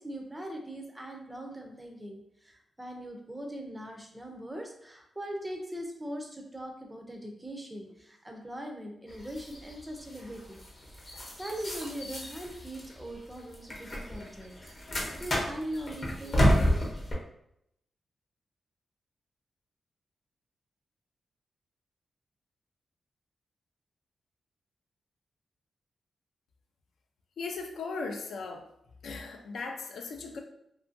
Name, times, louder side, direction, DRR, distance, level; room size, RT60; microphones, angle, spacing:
voice 1, 0.0-10.6 11.0-14.5 15.2-16.8, right 1 dB, 10° right, 2 dB, 0.4 m, -40 dB
sound 1, 9.1-17.1, equal, 35° left, 0.7 m, -31 dB
voice 2, 27.4-28.7 29.0-30.4, left 4 dB, 80° left, 4 dB, 0.4 m, -37 dB
2.6 x 2.4 x 2.5 m, 0.76 s
wide cardioid pair, 165°, 0 cm